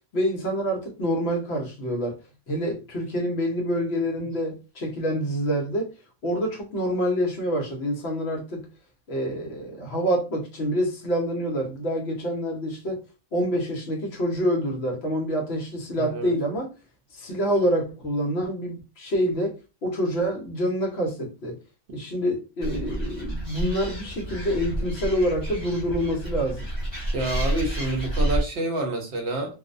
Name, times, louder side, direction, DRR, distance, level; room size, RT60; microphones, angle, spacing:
voice 1, 0.1-2.2 2.5-5.9 6.2-8.6 9.1-13.0 13.3-16.7 17.1-19.5 19.8-21.6 21.9-26.7, equal, 60° left, 1.0 m, -27 dB
voice 2, 16.0-16.3 27.1-29.5, right 2 dB, 65° right, 0.9 m, -28 dB
Animal, 22.6-28.4, right 1 dB, 25° left, 1.3 m, -29 dB
2.5 x 2.0 x 2.5 m
omnidirectional pair, 1.3 m